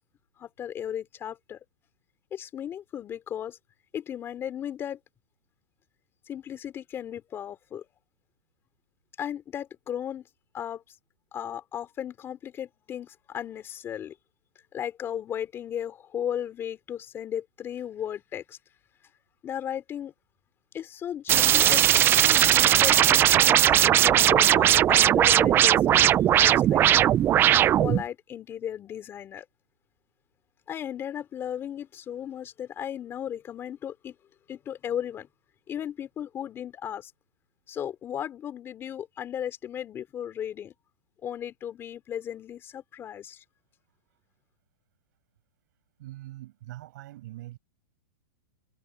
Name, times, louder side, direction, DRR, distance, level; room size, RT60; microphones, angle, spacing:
voice 1, 0.4-1.6 2.3-3.6 3.9-5.0 6.3-7.9 9.2-10.3 10.5-10.8 11.3-14.2 14.7-18.6 19.4-20.1 20.7-21.8 22.2-27.0 27.8-29.5 30.7-34.2 34.5-35.3 35.7-37.1 37.7-40.7 41.2-43.4, left 9 dB, 20° left, 3.7 m, -35 dB
sound 1, 21.3-28.0, right 11 dB, 20° right, 0.5 m, -19 dB
voice 2, 46.0-47.6, right 16 dB, 55° right, 7.9 m, -42 dB
hypercardioid pair, 150°, 12 cm